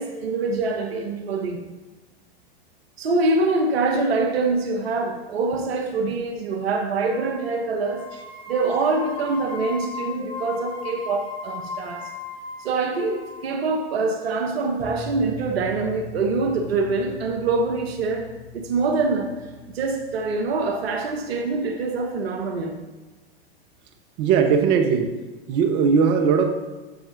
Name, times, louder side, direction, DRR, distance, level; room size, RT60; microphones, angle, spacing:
voice 1, 0.0-1.6 3.0-8.1 8.5-12.1 12.6-18.3 18.5-19.3 19.7-22.7, right 3 dB, 75° right, 4 dB, 1.1 m, -24 dB
sound 1, 7.1-7.5 7.8-13.4, left 4 dB, 30° left, 3.0 m, -36 dB
sound 2, 14.8-22.9, left 2 dB, 85° left, 1.3 m, -42 dB
voice 2, 24.2-25.1 25.5-26.5, right 6 dB, 50° right, 5 dB, 1.2 m, -19 dB
13.0 x 7.1 x 2.7 m, 1.2 s
hypercardioid pair, 95°, 31 cm